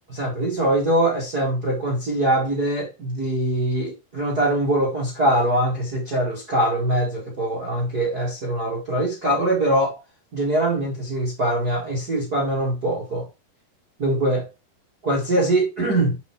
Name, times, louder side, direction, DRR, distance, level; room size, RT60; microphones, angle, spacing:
voice 1, 0.1-10.0 10.3-13.3 14.0-14.4 15.0-16.2, right 1 dB, 50° right, 1.2 m, -22 dB
8.2 x 4.4 x 4.3 m
omnidirectional pair, 5.8 m